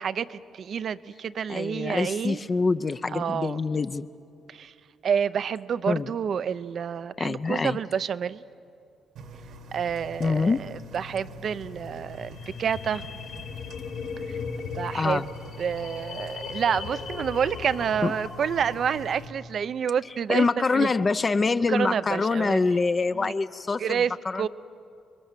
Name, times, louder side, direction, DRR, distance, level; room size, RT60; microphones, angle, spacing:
voice 1, 0.0-2.4 3.1-3.6 4.5-4.7 5.0-8.4 9.7-13.0 14.3-14.4 14.6-15.2 15.6-20.9 21.7-22.6 23.1-23.3 23.8-24.5, right 7 dB, 55° right, 16 dB, 0.6 m, -28 dB
voice 2, 1.5-4.1 5.9-6.1 7.2-7.8 10.2-10.6 14.9-15.3 18.0-18.1 20.3-24.5, left 4 dB, 30° left, 11 dB, 0.6 m, -25 dB
Engine, 9.2-19.3, left 2 dB, 80° right, 2.1 m, -44 dB
sound 1, 12.1-19.1, left 5 dB, 75° left, 4.2 m, -38 dB
29.0 x 22.0 x 7.4 m, 2.6 s
cardioid pair, 90°, 0 cm